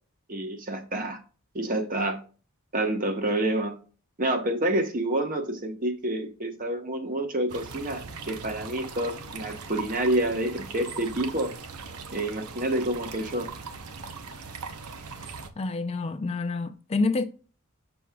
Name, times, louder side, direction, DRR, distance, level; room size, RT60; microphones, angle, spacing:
voice 1, 0.3-1.2 1.5-2.2 2.7-3.8 4.2-11.5 12.1-13.5, right 1 dB, 40° right, 1.0 m, -28 dB
sound 1, 7.5-15.5, right 5 dB, 90° right, 0.8 m, -40 dB
voice 2, 15.6-17.2, left 3 dB, 30° left, 0.4 m, -28 dB
7.0 x 6.1 x 2.3 m
head